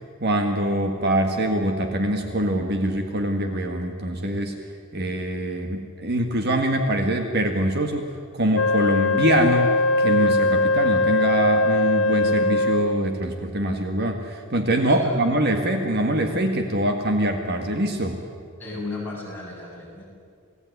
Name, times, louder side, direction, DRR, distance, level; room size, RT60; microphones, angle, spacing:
voice 1, 0.2-4.6 4.9-9.7 10.0-18.2, right 1 dB, 50° right, 5 dB, 1.9 m, -24 dB
Wind instrument woodwind instrument, 8.5-13.2, left 2 dB, 65° left, 0.6 m, -21 dB
voice 2, 18.6-20.0, left 2 dB, 10° left, -5 dB, 7.9 m, -34 dB
28.5 x 18.0 x 9.6 m, 2.2 s
head